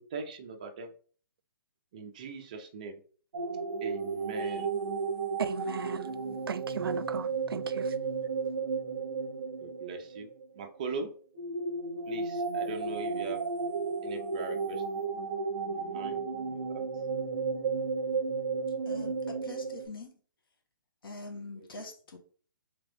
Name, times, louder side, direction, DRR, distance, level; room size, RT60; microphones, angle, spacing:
voice 1, 0.1-0.9 1.9-3.0 3.8-4.7 9.6-11.1 12.1-13.4 14.0-14.8 15.6-16.8, right 4 dB, 20° right, 0.5 m, -40 dB
sound 1, 3.3-10.5 11.3-19.8, right 4 dB, 45° right, 0.8 m, -33 dB
voice 2, 5.4-6.1 6.5-8.0, right 7 dB, 90° right, 0.4 m, -36 dB
voice 3, 18.8-20.2 21.0-22.2, left 3 dB, 75° left, 1.3 m, -44 dB
3.8 x 3.4 x 3.5 m
hypercardioid pair, 175°, 12 cm